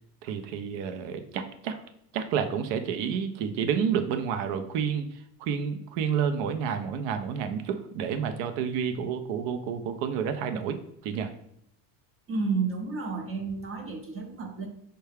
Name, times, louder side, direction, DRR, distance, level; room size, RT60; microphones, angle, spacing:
voice 1, 0.2-1.8 2.1-11.3, right 7 dB, 65° right, 8 dB, 0.6 m, -30 dB
voice 2, 12.3-14.7, right 4 dB, 30° right, 3 dB, 0.6 m, -31 dB
4.6 x 2.2 x 3.3 m, 0.72 s
supercardioid pair, 95°, 47 cm